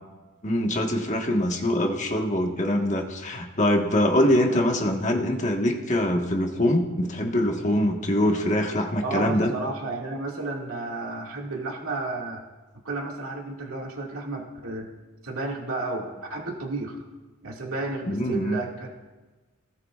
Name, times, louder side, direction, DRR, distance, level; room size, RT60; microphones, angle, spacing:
voice 1, 0.4-9.5 18.1-18.6, left 1 dB, 35° left, 1 dB, 1.5 m, -23 dB
voice 2, 9.0-12.4 12.8-14.9 15.2-17.0 17.4-18.9, right 2 dB, 80° right, -2 dB, 2.2 m, -32 dB
27.0 x 18.5 x 2.5 m, 1.3 s
head